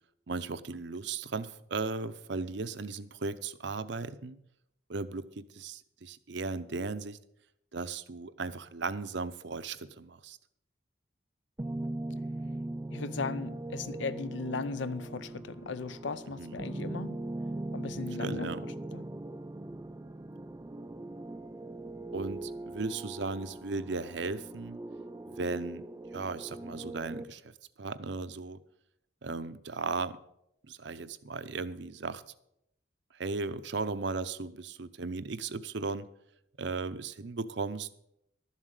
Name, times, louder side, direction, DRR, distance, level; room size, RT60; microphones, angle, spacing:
voice 1, 0.3-4.4 4.9-7.2 7.7-10.4 16.4-16.6 18.2-18.6 22.1-24.8 25.3-25.8 26.1-27.5 27.8-28.6 29.2-30.2 30.7-32.2 33.1-36.1 36.6-37.9, right 4 dB, 70° right, 0.7 m, -36 dB
sound 1, 11.6-27.2, right 2 dB, 15° right, 0.3 m, -40 dB
voice 2, 12.9-17.2 17.7-19.0, left 4 dB, 75° left, 0.6 m, -37 dB
12.0 x 7.4 x 6.6 m
head